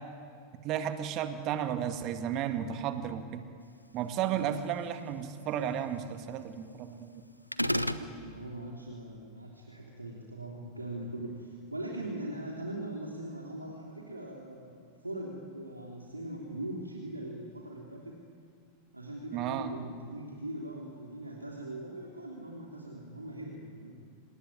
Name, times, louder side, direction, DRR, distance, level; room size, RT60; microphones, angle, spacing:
voice 1, 0.6-3.4 3.9-7.1 19.3-19.8, right 9 dB, 40° right, 8 dB, 2.0 m, -33 dB
sound 1, 7.5-8.1, equal, 90° left, 0.9 m, -29 dB
voice 2, 7.6-18.2 18.9-23.9, right 1 dB, 85° right, -1 dB, 3.1 m, -41 dB
26.5 x 19.5 x 9.7 m, 2.2 s
figure-of-eight pair, 90°, 0 cm